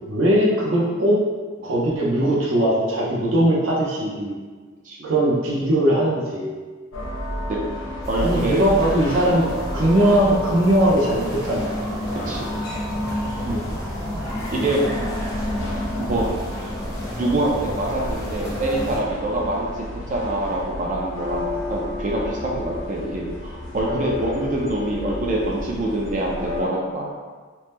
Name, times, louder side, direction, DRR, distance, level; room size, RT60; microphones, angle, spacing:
voice 1, 0.1-1.2 1.6-4.3 5.0-6.5 8.2-9.5 9.7-11.8 13.4-13.6 23.9-24.0, right 1 dB, 75° right, -6 dB, 0.6 m, -20 dB
sound 1, 6.9-26.6, left 1 dB, 70° left, 0.7 m, -32 dB
voice 2, 7.5-8.6 9.2-9.4 12.3-12.5 14.5-14.8 16.1-16.3 17.1-19.7 20.1-27.1, right 1 dB, 40° right, -2 dB, 0.4 m, -25 dB
sound 2, 8.0-19.0, left 1 dB, 15° left, 0.7 m, -30 dB
2.9 x 2.1 x 3.4 m, 1.4 s
head